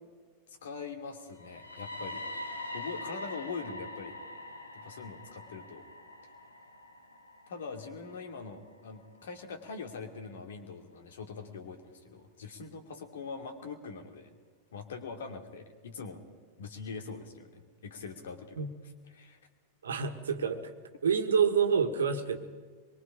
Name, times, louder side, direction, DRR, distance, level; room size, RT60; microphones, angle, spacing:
voice 1, 0.6-2.2 2.7-4.1 4.7-5.8 7.5-14.3 14.7-16.2 16.6-18.7 19.1-19.4, left 4 dB, 60° left, 5 dB, 2.7 m, -42 dB
sound 1, 1.3-9.3, left 1 dB, 80° left, 1.7 m, -44 dB
voice 2, 19.8-20.7 21.0-22.4, right 6 dB, 65° right, 8 dB, 1.6 m, -27 dB
25.0 x 22.5 x 5.1 m, 1.5 s
figure-of-eight pair, 90°, 0 cm